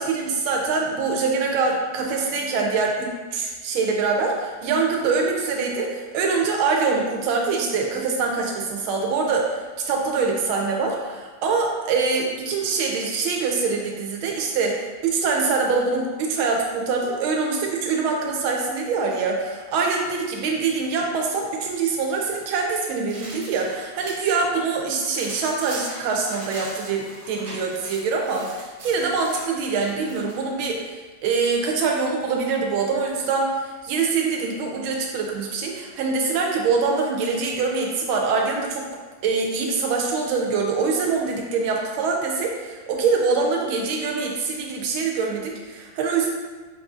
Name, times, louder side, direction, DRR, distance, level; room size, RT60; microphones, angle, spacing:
voice 1, 0.0-38.8 39.2-46.3, right 4 dB, 75° right, 0 dB, 1.4 m, -24 dB
sound 1, 22.2-24.4 24.7-30.5, right 1 dB, 40° right, 1.3 m, -41 dB
5.2 x 2.6 x 2.4 m, 1.3 s
omnidirectional pair, 2.3 m